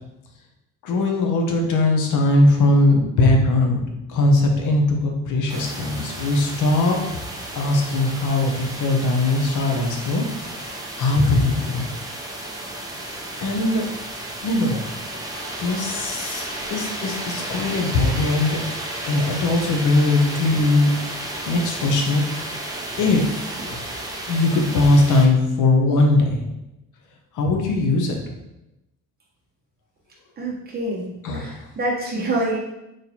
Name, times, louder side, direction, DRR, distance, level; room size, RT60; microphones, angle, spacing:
voice 1, 0.8-3.8 4.1-7.0 7.5-11.9 13.0-13.9 14.4-14.8 15.6-18.6 19.1-22.2 22.9-23.8 24.3-26.4 27.3-28.2 31.2-31.6, left 2 dB, 65° left, 2 dB, 0.8 m, -20 dB
sound 1, 5.5-25.3, right 1 dB, 10° right, 0.4 m, -33 dB
voice 2, 30.4-31.0 31.4-32.6, right 2 dB, 30° right, -4 dB, 1.0 m, -26 dB
4.1 x 3.2 x 2.8 m, 0.93 s
cardioid pair, 160°, 34 cm